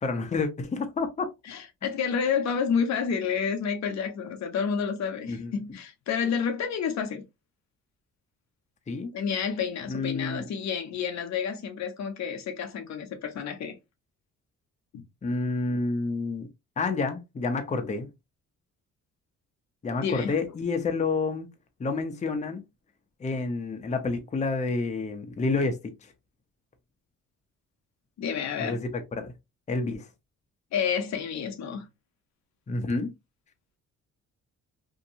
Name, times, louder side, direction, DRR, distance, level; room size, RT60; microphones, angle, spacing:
voice 1, 0.0-1.3 5.3-5.5 8.9-9.1 9.9-10.4 15.2-16.5 16.8-18.1 19.8-21.5 21.8-22.6 23.2-25.8 28.6-29.3 29.7-30.0 32.7-33.1, left 3 dB, 25° left, 0.6 m, -29 dB
voice 2, 1.5-7.2 9.1-13.7 14.9-15.0 20.0-20.3 28.2-28.8 30.7-31.9, left 6 dB, 65° left, 0.7 m, -29 dB
2.7 x 2.2 x 2.6 m
cardioid pair, 90°, 30 cm